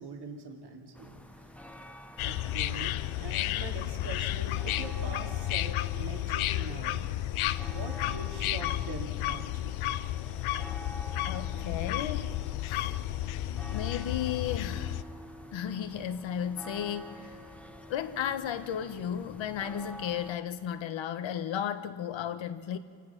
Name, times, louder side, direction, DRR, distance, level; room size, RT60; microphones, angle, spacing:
voice 1, 0.0-1.5 2.2-7.1 7.6-9.7, right 3 dB, 55° right, 2 dB, 2.9 m, -43 dB
sound 1, 0.9-20.4, equal, 5° left, 1.1 m, -48 dB
sound 2, 2.2-15.0, left 14 dB, 85° left, 0.7 m, -32 dB
voice 2, 11.3-12.3 12.7-13.0 13.7-15.0 15.5-17.4 17.9-22.8, left 9 dB, 70° left, 11 dB, 1.3 m, -34 dB
27.5 x 16.0 x 6.0 m, 2.2 s
cardioid pair, 115°, 47 cm